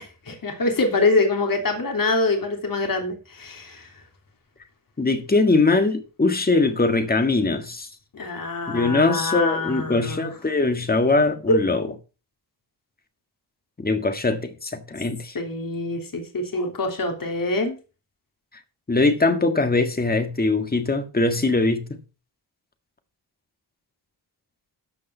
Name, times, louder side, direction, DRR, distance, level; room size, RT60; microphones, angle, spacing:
voice 1, 0.0-3.9 8.1-10.3 11.5-11.6 15.3-17.7, left 2 dB, 50° left, 3.3 m, -25 dB
voice 2, 5.0-7.9 8.7-11.9 13.8-15.3 18.9-22.0, left 3 dB, 20° left, 1.7 m, -21 dB
13.5 x 5.4 x 5.5 m
wide cardioid pair, 110°, 42 cm